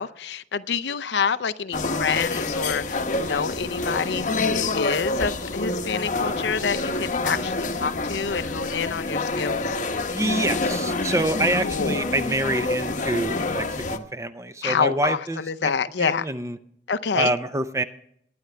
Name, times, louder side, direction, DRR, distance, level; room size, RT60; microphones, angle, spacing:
voice 1, 0.0-9.8 11.5-12.0 14.6-16.3 16.9-17.3, left 6 dB, 80° left, 11 dB, 0.6 m, -27 dB
sound 1, 1.7-14.0, left 3 dB, 45° left, 0.9 m, -27 dB
voice 2, 10.1-15.7 16.0-16.6 17.2-17.8, right 1 dB, 15° right, 11 dB, 0.6 m, -26 dB
21.5 x 9.5 x 3.3 m, 0.69 s
head